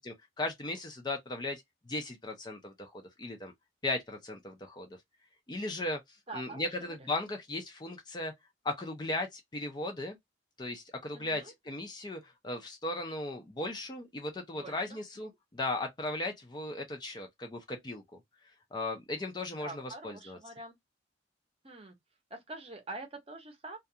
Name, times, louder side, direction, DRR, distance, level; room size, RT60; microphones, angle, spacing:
voice 1, 0.1-3.5 3.8-4.9 5.5-6.0 6.3-8.3 8.6-10.2 10.6-18.0 18.7-20.4, left 2 dB, 25° left, 0.4 m, -37 dB
voice 2, 6.3-7.0 11.1-11.5 14.5-14.9 19.6-20.7 21.6-22.0 22.3-23.8, right 2 dB, 30° right, 0.7 m, -45 dB
2.3 x 2.3 x 2.7 m
head